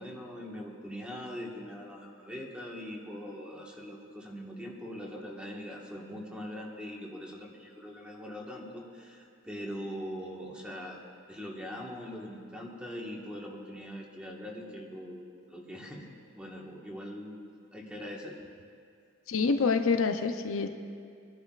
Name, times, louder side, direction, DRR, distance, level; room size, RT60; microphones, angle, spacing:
voice 1, 0.0-11.0 11.3-16.1 16.4-17.3 17.7-18.4, equal, 5° right, -3 dB, 1.4 m, -42 dB
voice 2, 19.3-20.7, left 4 dB, 75° left, 6 dB, 0.6 m, -26 dB
25.5 x 11.0 x 2.4 m, 2.3 s
head